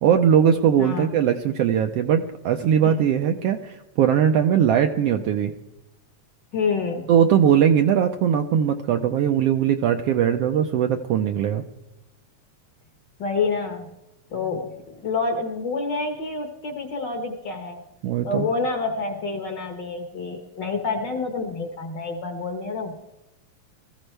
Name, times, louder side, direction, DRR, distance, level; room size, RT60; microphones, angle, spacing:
voice 1, 0.0-5.5 7.1-11.6 18.0-18.5, right 9 dB, 75° right, 6 dB, 1.5 m, -20 dB
voice 2, 6.5-7.1 13.2-13.9 14.3-14.7 15.0-17.8 18.2-23.0, left 4 dB, 50° left, 4 dB, 1.5 m, -28 dB
20.5 x 14.5 x 3.3 m, 0.94 s
omnidirectional pair, 3.4 m